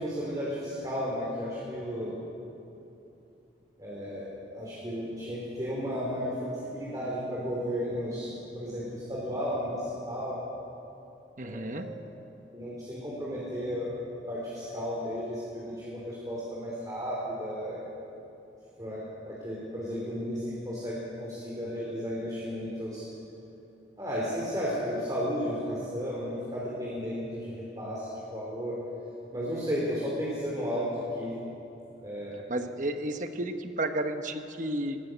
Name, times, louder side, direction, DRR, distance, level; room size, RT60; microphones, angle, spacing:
voice 1, 0.0-2.4 3.8-10.4 11.4-11.9 12.5-13.9 14.3-17.8 18.8-23.0 24.0-28.8 29.3-31.3 32.0-32.4, equal, 20° right, -6 dB, 4.2 m, -34 dB
voice 2, 11.4-11.9 32.5-35.0, right 1 dB, 40° right, 7 dB, 1.3 m, -32 dB
21.5 x 19.5 x 8.2 m, 2.9 s
head